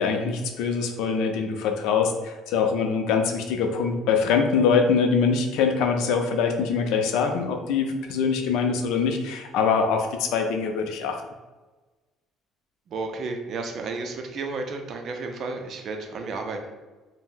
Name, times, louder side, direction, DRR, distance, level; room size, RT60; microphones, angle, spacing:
voice 1, 0.0-11.2, left 5 dB, 80° left, 4 dB, 0.4 m, -23 dB
voice 2, 12.9-16.6, right 3 dB, 50° right, 4 dB, 0.5 m, -32 dB
2.6 x 2.1 x 3.7 m, 1.2 s
cardioid pair, 120°, 0 cm